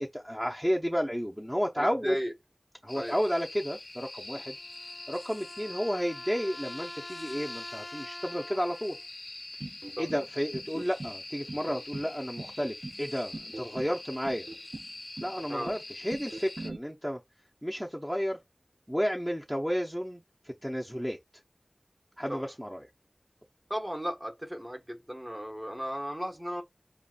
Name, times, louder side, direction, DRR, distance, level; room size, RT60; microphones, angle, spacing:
voice 1, 0.0-2.2 2.8-4.6 5.1-9.0 10.0-14.4 15.2-17.2 17.6-18.4 18.9-21.2 22.2-22.8, equal, ahead, 0.8 m, -32 dB
voice 2, 1.8-2.3 2.9-3.2 10.0-10.1 15.5-15.7 22.3-22.5 23.7-26.6, equal, 20° right, 1.2 m, -35 dB
sound 1, 2.9-16.7, left 2 dB, 80° left, 0.4 m, -45 dB
sound 2, 4.3-9.0, left 1 dB, 50° left, 0.7 m, -46 dB
sound 3, 9.6-10.2 10.5-11.2 11.5-12.1 12.4-13.0 13.3-13.9 14.2-14.9 15.2-15.8 16.1-16.8, right 2 dB, 75° right, 0.6 m, -41 dB
6.9 x 2.4 x 2.5 m
wide cardioid pair, 45°, 0 cm